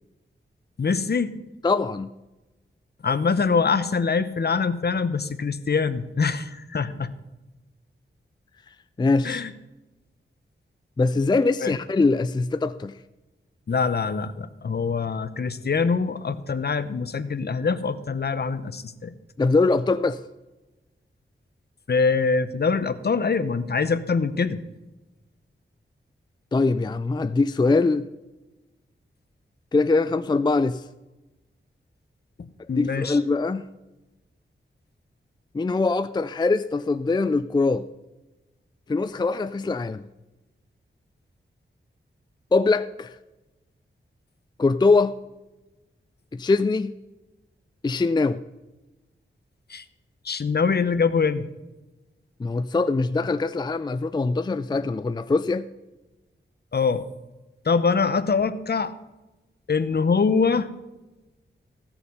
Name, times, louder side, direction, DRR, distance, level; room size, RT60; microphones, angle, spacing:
voice 1, 0.8-1.3 3.0-7.1 9.2-9.5 11.6-11.8 13.7-19.1 21.9-24.6 32.7-33.2 49.7-49.8 50.2-51.5 56.7-57.0 57.6-58.9 59.7-60.7, left 5 dB, 55° left, 0.8 m, -24 dB
voice 2, 1.6-2.1 9.0-9.5 11.0-12.9 19.4-20.2 26.5-28.1 29.7-30.8 32.7-33.6 35.5-37.9 38.9-40.1 42.5-43.2 44.6-45.2 46.3-46.9 47.8-48.4 52.4-55.7, left 3 dB, 20° left, 0.4 m, -22 dB
15.5 x 7.0 x 5.5 m
wide cardioid pair, 70°, 21 cm